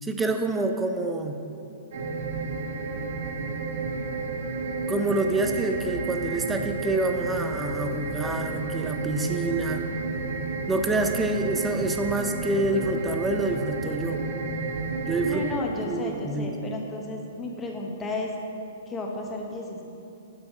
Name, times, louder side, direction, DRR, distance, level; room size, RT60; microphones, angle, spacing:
voice 1, 0.0-1.4 4.9-9.9 10.7-14.3 15.1-15.4 15.8-16.6, right 2 dB, 5° right, 5 dB, 0.4 m, -27 dB
sound 1, 1.9-15.6, right 3 dB, 55° right, 0.9 m, -31 dB
voice 2, 15.2-18.3 18.9-19.8, left 2 dB, 10° left, 0 dB, 0.9 m, -33 dB
7.0 x 6.2 x 6.6 m, 2.8 s
hypercardioid pair, 170°, 0 cm